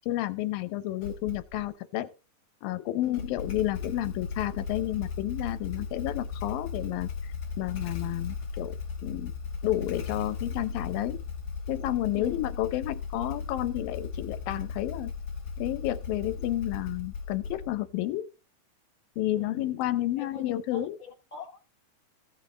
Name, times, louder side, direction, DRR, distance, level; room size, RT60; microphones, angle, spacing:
voice 1, 0.1-2.1 2.6-7.1 7.6-9.3 9.6-11.2 11.7-15.1 15.6-18.3 19.2-21.0, left 14 dB, 90° left, 2.7 m, -31 dB
Motorcycle / Engine starting, 1.0-1.7 3.0-17.9, left 5 dB, 55° left, 3.0 m, -36 dB
voice 2, 19.3-19.8 20.2-21.6, left 5 dB, 10° left, 2.1 m, -42 dB
15.5 x 6.2 x 3.9 m
omnidirectional pair, 4.0 m